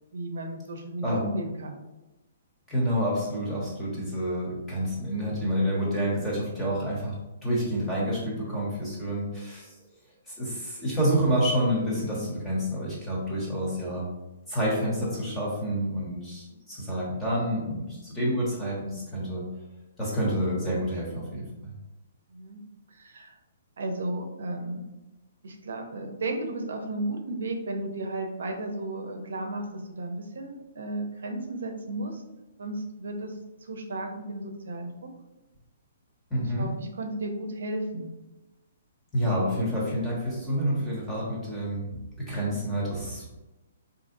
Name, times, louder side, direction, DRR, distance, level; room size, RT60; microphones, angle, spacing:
voice 1, 0.1-1.8 22.3-22.6 22.9-23.4 23.8-24.8 25.4-29.7 30.0-32.2 32.6-33.3 33.6-35.1 36.3-38.1, right 2 dB, 80° right, 4 dB, 0.6 m, -34 dB
voice 2, 2.7-9.7 10.3-14.1 14.5-19.5 20.0-21.7 36.3-36.7 39.1-41.9 42.2-43.4, equal, 10° left, -6 dB, 1.0 m, -28 dB
3.8 x 2.8 x 2.6 m, 1.0 s
hypercardioid pair, 155°, 0 cm